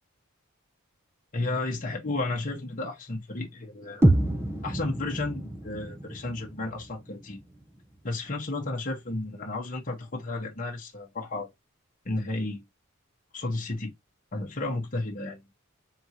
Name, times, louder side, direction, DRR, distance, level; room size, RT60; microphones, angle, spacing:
voice 1, 1.3-4.1 4.6-7.4 8.0-11.5 12.0-12.6 13.3-13.9 14.3-15.4, left 2 dB, 40° left, 1.1 m, -32 dB
sound 1, 4.0-8.0, right 1 dB, 10° right, 0.7 m, -28 dB
3.9 x 3.5 x 2.9 m
head